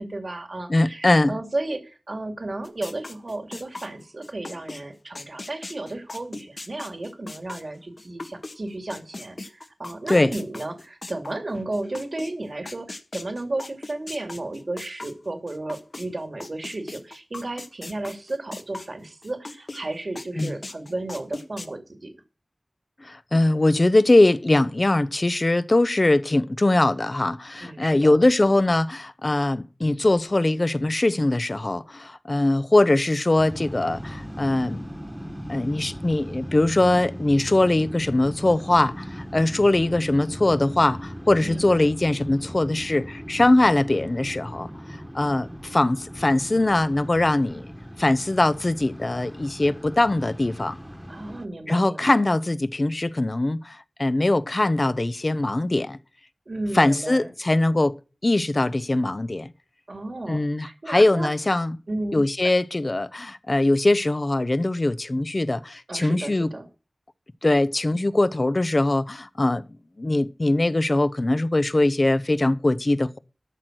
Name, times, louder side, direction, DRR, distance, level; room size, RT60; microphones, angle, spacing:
voice 1, 0.0-22.1 27.6-28.2 41.4-41.9 51.1-52.2 56.5-57.3 59.9-61.3 61.9-62.5 65.9-66.7, right 2 dB, 65° right, 2.5 m, -33 dB
voice 2, 0.7-1.4 10.1-10.3 20.4-20.5 23.0-34.8 35.5-44.7 45.1-47.7 48.0-50.8 51.7-56.0 56.7-58.0 58.2-59.5 60.3-61.8 62.1-66.5 67.4-69.6 70.0-73.2, left 2 dB, 50° left, 0.8 m, -21 dB
sound 1, 2.6-8.6 8.9-16.1 16.4-19.8 20.2-21.7, left 2 dB, 65° left, 1.5 m, -39 dB
sound 2, 33.4-51.5, equal, 5° right, 1.5 m, -38 dB
13.5 x 6.0 x 6.3 m
wide cardioid pair, 45°, 0 cm